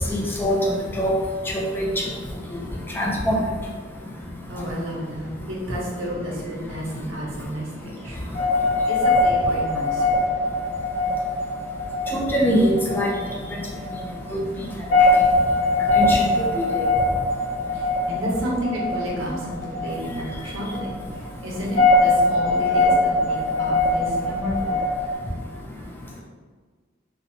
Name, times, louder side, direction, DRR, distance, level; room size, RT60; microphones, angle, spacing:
voice 1, 0.1-0.6 1.0-1.1 1.5-1.9 3.0-3.4 12.1-13.1 13.5-13.6 14.3-14.4 15.9-16.3, equal, 10° left, -2 dB, 0.3 m, -22 dB
voice 2, 4.5-8.3 8.8-10.3 14.5-14.8 17.7-20.9 21.4-24.9, equal, 85° right, -3 dB, 0.7 m, -31 dB
sound 1, 8.3-25.1, left 2 dB, 60° left, 0.7 m, -22 dB
2.7 x 2.1 x 2.5 m, 1.5 s
head